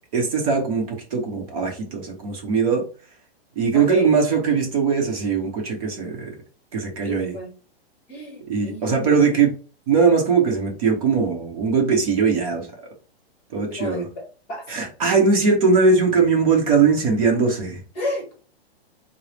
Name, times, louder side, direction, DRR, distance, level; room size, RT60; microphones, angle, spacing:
voice 1, 0.1-2.8 3.6-6.3 6.7-7.4 8.5-9.5 9.9-12.7 13.5-14.1 14.7-17.8, right 5 dB, 35° right, 1 dB, 0.8 m, -20 dB
voice 2, 3.7-4.1 7.1-7.5 8.1-9.4 13.7-14.1 14.5-14.6 17.9-18.3, left 1 dB, 20° left, 0 dB, 0.9 m, -31 dB
4.2 x 2.0 x 3.2 m, 0.38 s
hypercardioid pair, 165°, 32 cm